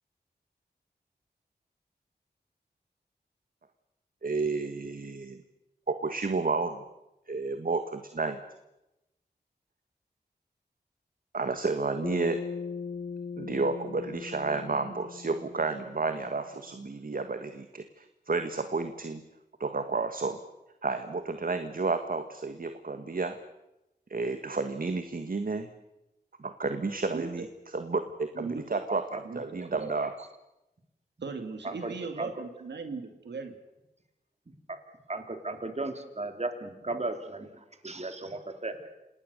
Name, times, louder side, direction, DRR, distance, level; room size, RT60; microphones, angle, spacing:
voice 1, 4.2-5.4 5.9-6.8 7.3-8.4 11.3-12.4 13.4-19.2 19.6-20.4 20.8-23.4 24.1-25.7 26.4-27.5 27.7-29.0 29.3-30.1, right 3 dB, 55° right, 8 dB, 1.6 m, -31 dB
Bass guitar, 12.0-16.4, left 5 dB, 50° left, 1.9 m, -39 dB
voice 2, 27.1-27.5 28.3-28.8 29.2-29.9 31.2-33.6, right 4 dB, 90° right, 7 dB, 2.1 m, -38 dB
voice 3, 28.9-29.2 31.6-32.3 34.5-34.8 35.1-38.9, right 2 dB, 40° right, 6 dB, 3.3 m, -36 dB
27.5 x 19.0 x 6.7 m, 0.93 s
cardioid pair, 50°, 18 cm